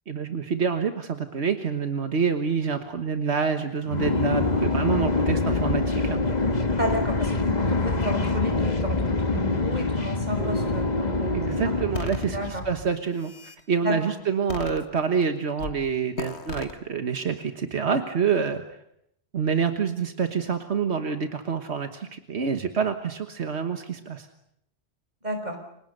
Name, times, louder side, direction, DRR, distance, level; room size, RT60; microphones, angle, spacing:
voice 1, 0.1-6.2 11.3-13.3 13.7-18.6 19.3-24.3, right 6 dB, 80° right, 7 dB, 1.7 m, -27 dB
sound 1, 3.9-12.8, left 3 dB, 40° left, 1.7 m, -25 dB
voice 2, 6.8-11.7 12.2-12.6 13.8-14.1 25.2-25.6, equal, 40° right, 5 dB, 5.4 m, -32 dB
sound 2, 11.9-12.3 13.0-13.6 14.5-15.2 15.6-15.8 16.2-16.7, left 3 dB, 80° left, 2.1 m, -36 dB
30.0 x 25.0 x 6.7 m, 0.76 s
omnidirectional pair, 1.1 m